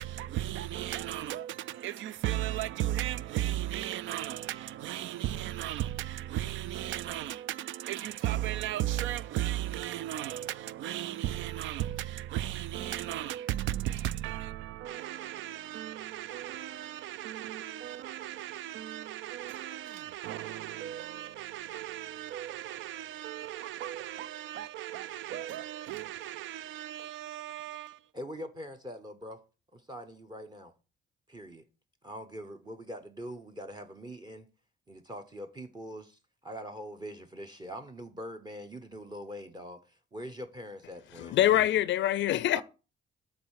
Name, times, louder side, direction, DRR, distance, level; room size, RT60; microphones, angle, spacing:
voice 1, 0.0-28.0, right 13 dB, 75° right, 0.4 m, -35 dB
voice 2, 28.1-29.4 29.7-30.7 31.3-31.6 32.0-34.5 34.9-41.4 42.5-42.6, equal, 20° right, 0.8 m, -43 dB
voice 3, 41.2-42.6, left 12 dB, 70° left, 0.4 m, -25 dB
7.9 x 3.2 x 6.2 m
cardioid pair, 90°, 20 cm